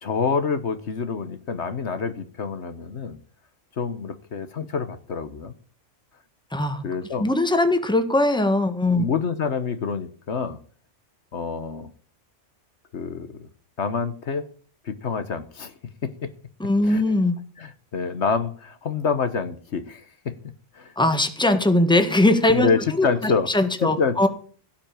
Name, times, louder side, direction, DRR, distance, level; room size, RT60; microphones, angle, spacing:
voice 1, 0.0-3.2 3.8-5.5 6.8-7.2 8.9-10.6 11.3-11.9 12.9-13.5 13.8-14.4 14.8-15.7 16.0-16.3 16.8-17.0 17.6-20.4 20.7-20.9 22.5-23.5 23.8-24.3, left 5 dB, 65° left, 11 dB, 1.4 m, -27 dB
voice 2, 6.5-6.8 7.2-9.0 16.6-17.4 20.9-24.3, left 2 dB, 5° left, 8 dB, 1.5 m, -20 dB
17.0 x 5.9 x 8.8 m, 0.43 s
omnidirectional pair, 1.3 m